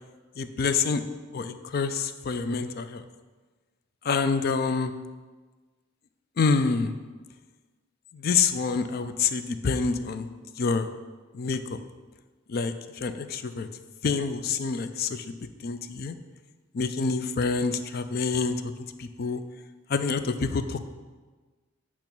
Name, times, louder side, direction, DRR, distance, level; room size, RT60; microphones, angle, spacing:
voice 1, 0.4-1.0 1.3-3.0 4.1-4.9 6.4-6.9 8.2-10.3 10.6-10.9 11.3-11.8 12.5-12.7 13.0-13.7 14.0-15.3 15.6-16.2 16.7-18.6 19.0-19.4 19.9-20.8, left 5 dB, 50° left, 10 dB, 0.4 m, -27 dB
8.7 x 3.0 x 6.0 m, 1.3 s
head